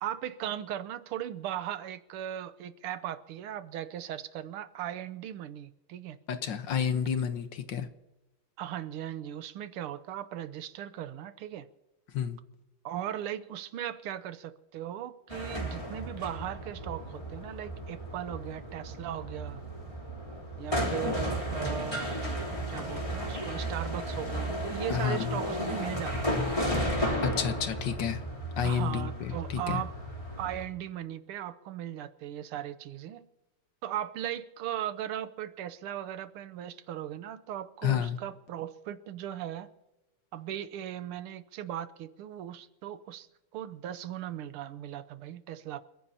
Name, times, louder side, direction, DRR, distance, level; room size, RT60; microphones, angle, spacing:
voice 1, 0.0-6.2 8.6-11.7 12.9-19.6 20.6-26.4 28.6-29.9 30.4-33.2 33.8-39.7 40.3-43.3 43.5-45.8, right 11 dB, 85° right, 1.7 m, -38 dB
voice 2, 6.3-7.9 12.1-12.4 24.9-25.4 27.2-28.2 28.6-29.8 37.8-38.2, left 8 dB, 60° left, 1.6 m, -30 dB
sound 1, 15.3-30.7, equal, 15° left, 3.3 m, -34 dB
29.0 x 15.0 x 2.8 m
omnidirectional pair, 2.4 m